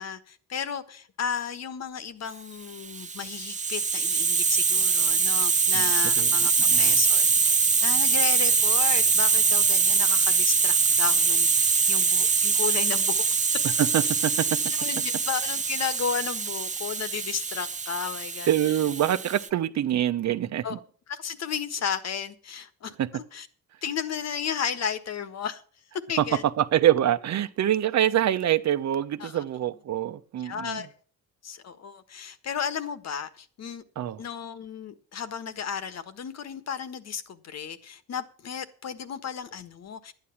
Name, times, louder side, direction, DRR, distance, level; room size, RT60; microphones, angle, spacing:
voice 1, 0.0-13.3 14.7-18.5 20.6-20.8 21.1-22.9 23.3-23.5 23.8-25.6 26.1-26.4 29.2-29.4 30.4-30.9 31.4-33.8 34.2-40.1, left 7 dB, 60° left, 1.5 m, -33 dB
Hiss, 2.8-19.5, right 5 dB, 25° right, 1.0 m, -23 dB
voice 2, 13.8-14.6 18.5-20.8 23.0-23.1 26.2-26.3 26.6-30.8 34.0-34.2, right 11 dB, 65° right, 1.1 m, -25 dB
11.5 x 9.3 x 7.2 m
cardioid pair, 90°, 30 cm